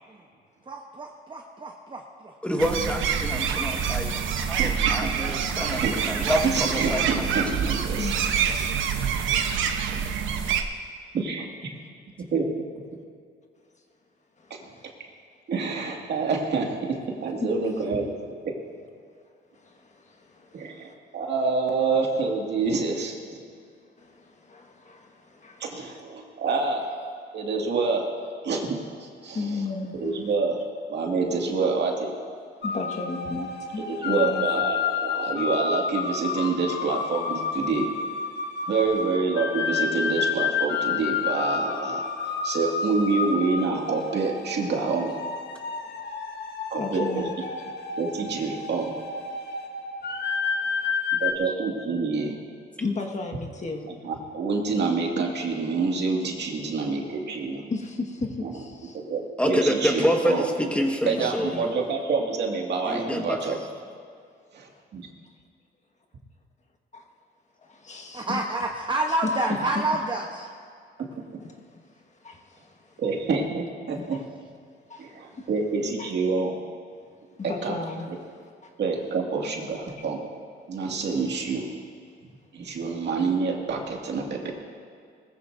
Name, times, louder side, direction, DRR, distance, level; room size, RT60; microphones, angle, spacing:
voice 1, 0.7-2.0 68.1-70.4, right 2 dB, 25° right, 1 dB, 1.0 m, -28 dB
voice 2, 2.4-4.1 4.5-7.6 59.4-61.8 62.9-63.6, equal, 5° left, 2 dB, 1.5 m, -27 dB
sound 1, 2.6-10.6, right 7 dB, 80° right, 1.0 m, -26 dB
voice 3, 4.6-8.1 11.1-11.7 12.3-12.5 14.5-14.6 15.5-18.1 18.4-18.6 20.5-23.4 25.6-26.9 27.3-28.1 28.4-29.4 30.0-30.6 30.9-32.1 33.9-37.9 38.7-45.2 46.7-47.3 48.0-48.9 51.2-52.4 54.0-57.7 58.4-58.5 58.9-60.5 61.1-63.6 64.5-65.1 71.0-71.1 71.3-71.4 73.0-74.2 75.0-76.6 77.4-77.7 78.8-80.3 80.7-81.7 82.5-84.5, right 4 dB, 60° right, 0 dB, 2.2 m, -27 dB
voice 4, 8.0-8.8 14.4-14.9 17.4-17.5 19.5-21.0 24.0-26.0 29.3-30.0 32.6-34.4 45.8-46.0 46.8-47.3 50.1-51.3 52.8-53.9 57.7-59.0 61.2-61.7 64.7-64.8 66.9-67.0 67.6-68.4 69.1-70.1 71.4-73.0 73.9-74.2 74.9-75.5 76.0-76.1 77.5-78.7 82.6-82.8, left 3 dB, 35° left, 3 dB, 1.6 m, -36 dB
sound 2, 32.6-51.3, left 5 dB, 60° left, 1.3 m, -30 dB
19.5 x 14.5 x 2.7 m, 2.2 s
cardioid pair, 90°, 20 cm